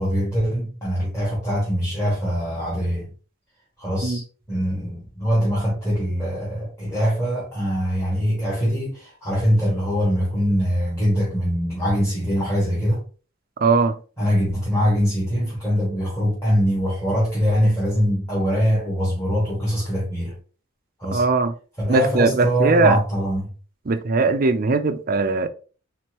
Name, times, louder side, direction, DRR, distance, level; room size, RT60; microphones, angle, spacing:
voice 1, 0.0-3.1 3.8-4.2 4.5-13.0 14.2-20.3 21.0-21.2 21.8-23.5, equal, 15° left, 1.9 m, -23 dB
voice 2, 13.6-14.0 21.1-21.5 21.9-23.0 23.9-25.5, right 3 dB, 45° right, 0.5 m, -19 dB
4.5 x 3.9 x 3.0 m
head